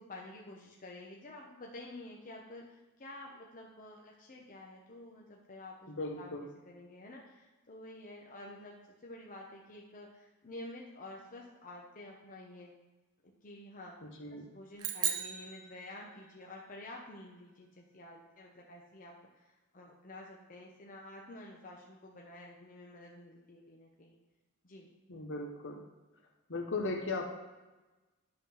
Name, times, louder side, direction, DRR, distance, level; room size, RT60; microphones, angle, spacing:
voice 1, 0.0-5.9 6.2-6.4 6.7-8.8 9.0-12.7 13.2-14.0 14.3-24.2 24.6-24.9, left 1 dB, 40° left, -1 dB, 0.9 m, -50 dB
voice 2, 5.9-6.5 14.0-14.5 25.1-25.8 26.5-27.3, left 3 dB, 60° left, 2 dB, 1.3 m, -37 dB
sound 1, 14.8-16.4, right 9 dB, 80° right, 0.9 m, -37 dB
11.0 x 3.9 x 5.7 m, 1.2 s
head